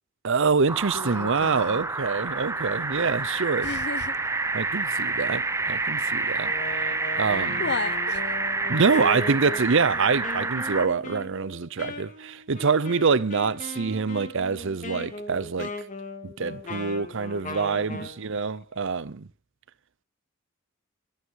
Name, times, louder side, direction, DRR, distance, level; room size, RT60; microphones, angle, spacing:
voice 1, 0.2-3.7 4.5-6.5 7.2-7.6 8.7-15.7 16.2-19.3, right 5 dB, 60° right, 0.7 m, -25 dB
sound 1, 0.7-10.9, right 3 dB, 15° right, 0.6 m, -28 dB
voice 2, 0.9-1.8 3.6-4.1 7.6-8.2 17.7-18.1, left 4 dB, 50° left, 1.0 m, -33 dB
Wind instrument woodwind instrument, 6.4-18.2, left 2 dB, 35° left, 2.8 m, -38 dB
24.0 x 9.7 x 4.7 m
head